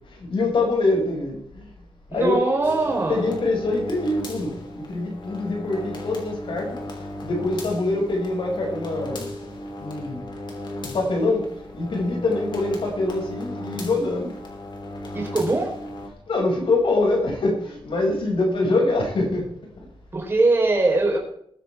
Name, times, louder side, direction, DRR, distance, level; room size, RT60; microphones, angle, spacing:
voice 1, 0.2-1.7 2.1-2.5 2.8-6.7 7.2-9.3 9.8-10.2 10.9-11.5 11.7-14.3 16.3-19.5, left 2 dB, 65° left, 0 dB, 6.2 m, -24 dB
voice 2, 2.1-3.3 15.1-15.7 20.1-21.2, right 2 dB, 25° right, -1 dB, 4.1 m, -21 dB
sound 1, 2.6-16.1, left 1 dB, 50° left, 3.3 m, -36 dB
21.0 x 10.0 x 3.6 m, 0.66 s
wide cardioid pair, 175°, 10 cm